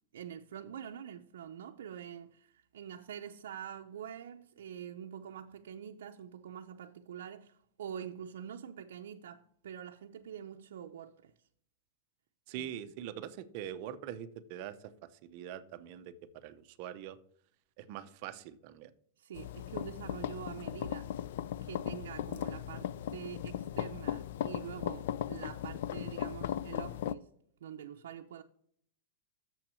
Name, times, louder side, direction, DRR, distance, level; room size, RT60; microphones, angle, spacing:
voice 1, 0.1-11.5 12.5-12.7 13.1-13.2 19.2-21.2 21.6-27.3 27.6-28.4, right 9 dB, 85° right, 0.6 m, -45 dB
voice 2, 12.5-14.9 15.2-17.2 17.8-18.9, right 10 dB, 40° right, 0.6 m, -43 dB
sound 1, 19.3-27.1, left 10 dB, 65° left, 0.4 m, -37 dB
7.1 x 5.9 x 6.8 m
supercardioid pair, 165°, 0 cm